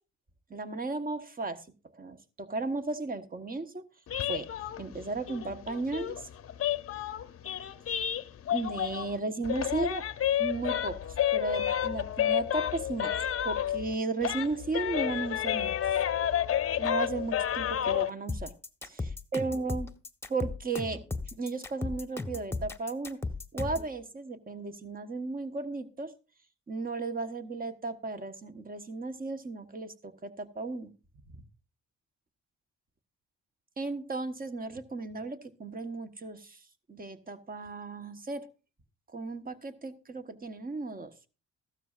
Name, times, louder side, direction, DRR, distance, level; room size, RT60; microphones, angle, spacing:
voice 1, 0.5-1.6 1.9-3.8 4.3-4.5 4.8-6.3 8.5-10.0 10.4-13.1 13.4-16.0 16.8-18.5 18.8-19.9 20.3-21.0 21.4-23.2 23.5-26.1 26.7-30.9 31.3-31.4 33.8-36.6 36.9-38.4 39.1-41.1, right 3 dB, 30° right, 9 dB, 1.3 m, -35 dB
sound 1, 4.1-9.2 9.4-13.9 14.2-18.1, left 10 dB, 50° left, 0.7 m, -30 dB
sound 2, 18.3-23.9, left 3 dB, 10° left, 1.2 m, -36 dB
15.0 x 12.5 x 2.5 m, 0.33 s
cardioid pair, 90°, 30 cm